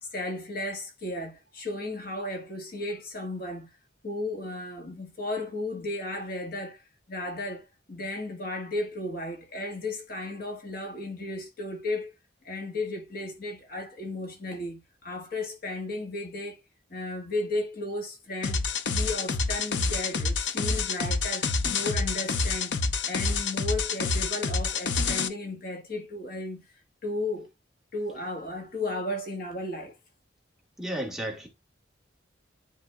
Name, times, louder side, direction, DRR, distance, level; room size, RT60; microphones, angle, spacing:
voice 1, 0.0-3.7 4.0-6.8 7.1-12.1 12.4-16.6 16.9-18.6 18.9-22.8 23.0-26.7 27.0-27.5 27.9-29.9, left 2 dB, 55° left, 1.6 m, -34 dB
sound 1, 18.4-25.3, left 4 dB, 70° left, 0.6 m, -28 dB
voice 2, 30.8-31.5, right 1 dB, 5° right, 1.4 m, -33 dB
10.5 x 3.9 x 2.3 m
head